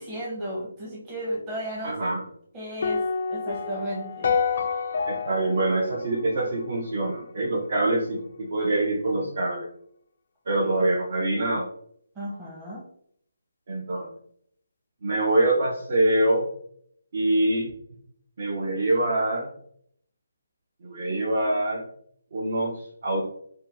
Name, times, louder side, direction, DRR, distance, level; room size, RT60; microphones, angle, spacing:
voice 1, 0.0-2.1 2.5-4.4 10.6-10.9 12.2-12.8, equal, 20° right, -5 dB, 0.8 m, -34 dB
voice 2, 1.8-2.2 5.0-9.7 10.5-11.7 13.7-14.1 15.0-16.5 17.1-17.7 18.4-19.5 20.8-21.8 22.3-23.2, right 1 dB, 55° right, -2 dB, 0.6 m, -25 dB
sound 1, 2.8-7.1, left 6 dB, 55° left, 0.3 m, -28 dB
2.6 x 2.2 x 3.5 m, 0.66 s
figure-of-eight pair, 150°, 0 cm